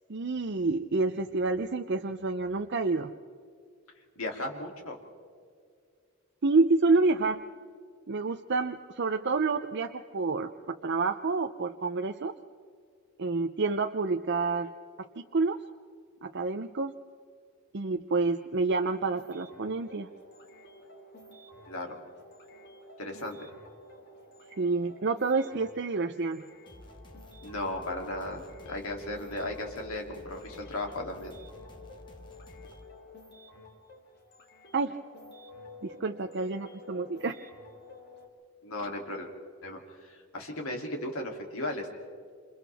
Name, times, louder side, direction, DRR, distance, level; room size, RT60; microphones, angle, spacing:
voice 1, 0.1-3.1 6.4-7.4 8.1-12.3 13.2-14.7 15.2-15.6 16.2-16.9 17.7-20.1 24.6-26.4 34.7-35.0 35.8-37.4, right 3 dB, 50° right, 5 dB, 0.6 m, -28 dB
voice 2, 4.2-5.0 21.7-22.0 23.0-23.5 27.4-31.3 38.6-39.3 39.6-41.9, left 1 dB, 70° left, 1 dB, 2.9 m, -36 dB
sound 1, 18.9-38.3, left 2 dB, 50° left, 2.6 m, -52 dB
sound 2, 26.7-32.9, left 1 dB, 20° left, 1.4 m, -51 dB
28.0 x 27.5 x 3.5 m, 2.2 s
head